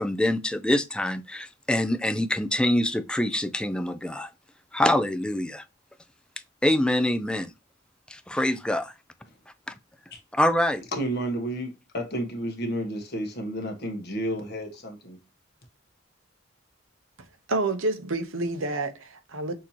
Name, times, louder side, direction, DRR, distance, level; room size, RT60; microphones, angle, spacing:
voice 1, 0.0-4.3 4.7-5.6 6.6-7.5 8.1-8.9 10.3-10.8, left 1 dB, 5° left, 0.4 m, -25 dB
voice 2, 10.9-15.2, right 1 dB, 55° left, 1.3 m, -31 dB
voice 3, 17.5-19.6, right 2 dB, 85° right, 0.8 m, -28 dB
6.4 x 2.8 x 2.8 m
head